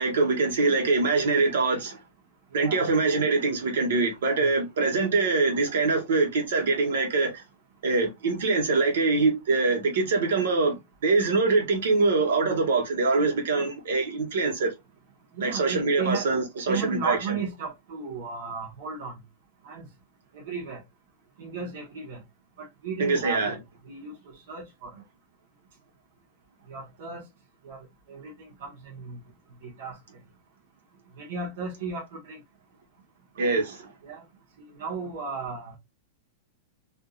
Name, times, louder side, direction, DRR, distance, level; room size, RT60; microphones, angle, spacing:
voice 1, 0.0-2.0 2.5-7.4 7.8-10.8 11.0-14.7 15.4-17.2 23.0-23.6 33.3-33.9, right 3 dB, 80° right, 1.4 m, -24 dB
voice 2, 2.6-2.9 4.3-4.5 15.3-16.3 16.7-19.1 19.6-19.8 20.3-20.8 21.4-22.2 22.6-23.6 23.9-24.2 24.5-24.9 26.7-27.2 27.6-27.8 28.1-29.2 29.6-30.0 31.2-32.4 34.0-34.2 34.6-35.8, right 5 dB, 60° right, 1.1 m, -35 dB
3.5 x 2.6 x 2.4 m
supercardioid pair, 170°, 0 cm